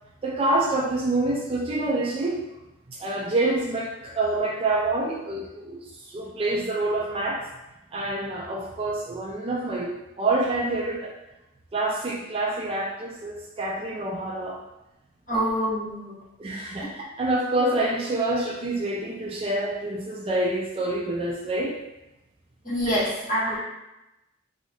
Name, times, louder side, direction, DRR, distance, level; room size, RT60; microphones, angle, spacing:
voice 1, 0.2-2.4 2.9-7.5 7.9-11.1 11.7-14.6 16.4-21.8, right 2 dB, 30° right, -1 dB, 0.3 m, -27 dB
voice 2, 15.3-16.2 22.6-23.6, equal, 45° left, -8 dB, 1.2 m, -26 dB
2.8 x 2.6 x 2.7 m, 0.95 s
head